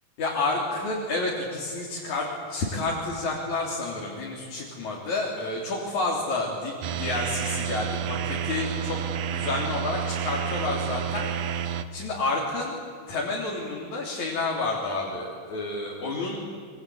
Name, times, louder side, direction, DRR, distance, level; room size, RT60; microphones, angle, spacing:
voice 1, 0.2-12.8 13.1-16.5, left 3 dB, 65° left, -3 dB, 4.8 m, -30 dB
sound 1, 6.8-11.8, right 8 dB, 80° right, 2.5 m, -30 dB
27.0 x 24.5 x 8.7 m, 2.2 s
omnidirectional pair, 3.7 m